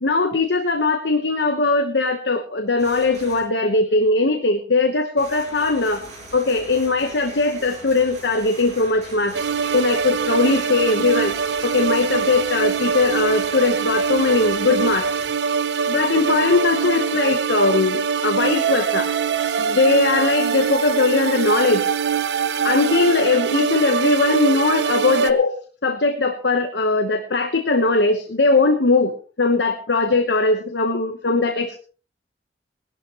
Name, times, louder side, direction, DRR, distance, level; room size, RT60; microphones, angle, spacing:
voice 1, 0.0-6.0 6.3-9.3 9.7-11.3 11.6-15.1 15.9-19.1 19.6-21.9 22.6-25.5 25.8-29.1 29.4-31.8, left 3 dB, 75° left, 6 dB, 1.1 m, -20 dB
sound 1, 2.8-3.4 5.2-15.3, right 2 dB, 45° right, 7.4 m, -40 dB
sound 2, 9.3-25.3, right 6 dB, 80° right, 0.7 m, -23 dB
19.0 x 12.0 x 3.1 m, 0.37 s
head